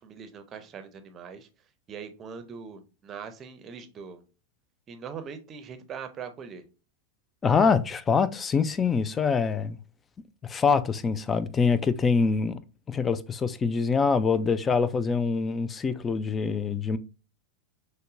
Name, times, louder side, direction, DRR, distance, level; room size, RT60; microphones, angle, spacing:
voice 1, 0.0-1.5 1.9-4.2 4.9-6.6, right 6 dB, 25° right, 0.6 m, -41 dB
voice 2, 7.4-9.8 10.4-12.6 12.9-17.0, left 5 dB, 20° left, 0.3 m, -24 dB
6.5 x 2.2 x 2.4 m
figure-of-eight pair, 90°, 0 cm